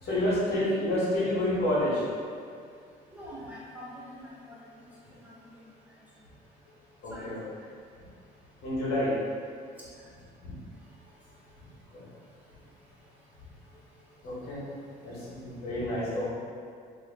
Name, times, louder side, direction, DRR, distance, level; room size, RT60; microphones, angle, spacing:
voice 1, 0.0-2.0 7.0-7.4 8.6-9.1 10.4-10.5 11.9-12.1 14.2-14.6 15.0-16.3, left 1 dB, 70° left, -7 dB, 1.5 m, -29 dB
voice 2, 3.1-4.6 5.2-5.3 7.1-7.3 15.0-15.3, equal, 10° right, -9 dB, 1.3 m, -45 dB
3.1 x 2.8 x 4.0 m, 2.2 s
cardioid pair, 110°, 17 cm